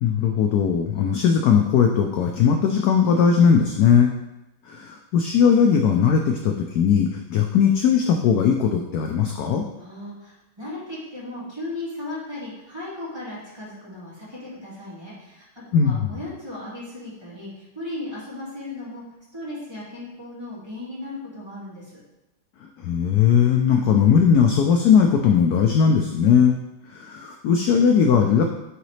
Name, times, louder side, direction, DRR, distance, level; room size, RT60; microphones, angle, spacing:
voice 1, 0.0-4.1 4.7-9.6 15.7-16.2 22.8-26.6 26.9-28.4, left 7 dB, 75° left, 3 dB, 0.9 m, -18 dB
voice 2, 9.8-15.4 15.7-19.0 19.3-21.9, left 2 dB, 15° right, -9 dB, 2.2 m, -36 dB
9.5 x 3.9 x 3.2 m, 0.98 s
omnidirectional pair, 2.1 m